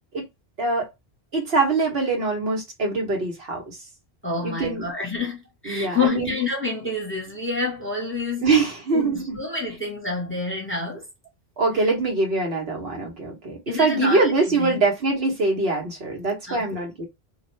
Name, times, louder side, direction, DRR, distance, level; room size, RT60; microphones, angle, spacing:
voice 1, 1.3-3.8 4.4-4.8 5.7-6.3 8.4-9.4 11.6-17.1, right 3 dB, 75° right, 1.3 m, -23 dB
voice 2, 4.2-8.5 8.9-11.1 11.7-11.9 13.7-14.8 16.5-16.8, left 3 dB, 10° left, 1.0 m, -28 dB
2.6 x 2.4 x 3.1 m
omnidirectional pair, 1.1 m